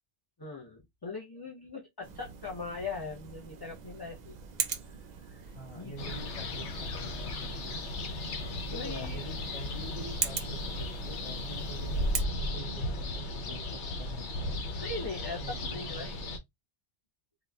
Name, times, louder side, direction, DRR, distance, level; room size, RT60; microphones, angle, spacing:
voice 1, 0.4-4.4 5.3-6.1 7.7-7.9 8.4-9.2 14.7-16.3, left 3 dB, 25° left, 0.6 m, -41 dB
sound 1, 2.0-12.2, right 6 dB, 55° right, 0.5 m, -41 dB
voice 2, 5.5-7.8 8.7-14.6 15.4-16.1, right 1 dB, 65° left, 1.8 m, -46 dB
sound 2, 6.0-16.4, left 1 dB, 90° left, 1.0 m, -35 dB
4.0 x 2.3 x 2.2 m
omnidirectional pair, 1.1 m